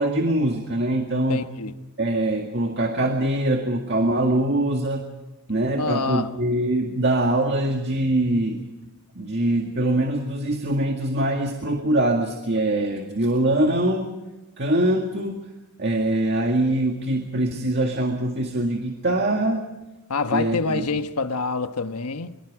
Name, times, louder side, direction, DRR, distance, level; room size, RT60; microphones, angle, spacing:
voice 1, 0.0-1.4 2.0-5.1 5.5-8.6 9.2-14.1 14.6-15.5 15.8-19.6 20.3-20.9, right 1 dB, 50° right, 2.0 m, -23 dB
voice 2, 1.3-1.7 5.8-6.3 20.1-22.3, left 3 dB, 90° left, 1.3 m, -26 dB
24.5 x 24.0 x 5.0 m
head